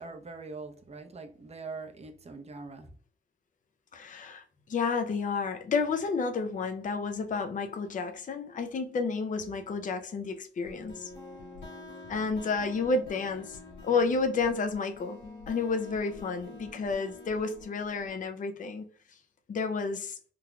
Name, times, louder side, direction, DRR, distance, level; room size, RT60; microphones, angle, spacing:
voice 1, 0.0-2.9, right 4 dB, 35° right, 0.8 m, -43 dB
voice 2, 3.9-4.4 4.7-11.1 12.1-15.2 15.5-18.9 19.5-20.2, left 4 dB, 45° left, 0.5 m, -31 dB
sound 1, 10.6-18.2, left 3 dB, 90° left, 1.5 m, -47 dB
3.8 x 2.8 x 2.3 m
cardioid pair, 95°, 19 cm